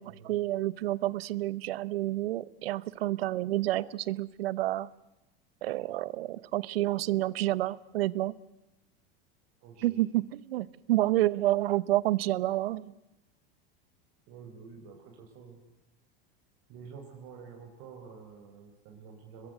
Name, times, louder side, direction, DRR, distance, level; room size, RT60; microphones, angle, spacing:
voice 1, 0.0-4.9 5.6-8.3 9.8-12.9, right 15 dB, 80° right, 20 dB, 0.9 m, -29 dB
voice 2, 9.6-10.0 14.3-15.6 16.7-19.5, right 6 dB, 55° right, 1 dB, 4.4 m, -49 dB
23.0 x 21.5 x 7.9 m, 0.93 s
hypercardioid pair, 100°, 29 cm